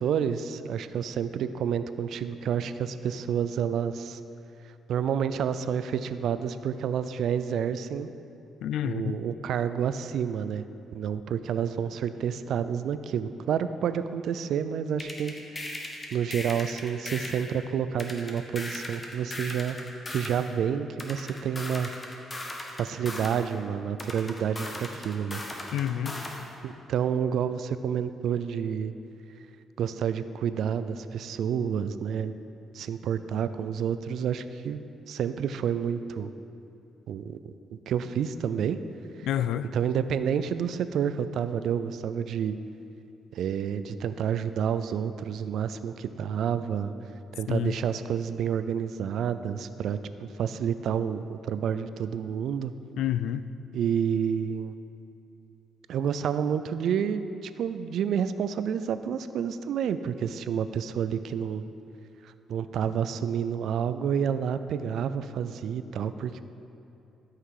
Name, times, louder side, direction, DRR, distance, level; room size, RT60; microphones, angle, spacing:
voice 1, 0.0-4.2 4.9-8.1 8.8-10.7 10.9-15.3 16.1-19.8 20.1-21.9 22.8-25.4 26.6-28.9 29.8-32.3 32.7-34.8 35.1-36.3 37.1-38.8 39.7-42.6 43.3-46.9 47.3-52.7 53.7-54.7 55.9-61.7 62.2-66.4, right 8 dB, 70° right, 12 dB, 0.4 m, -29 dB
voice 2, 8.6-9.2 25.7-26.2 39.2-39.7 47.5-47.8 53.0-53.5, left 11 dB, 80° left, 14 dB, 0.3 m, -28 dB
sound 1, 15.0-17.5 18.0-20.4 21.0-23.4 24.0-26.4, left 1 dB, 25° left, 1.4 m, -38 dB
13.0 x 5.7 x 4.8 m, 2.8 s
cardioid pair, 90°, 0 cm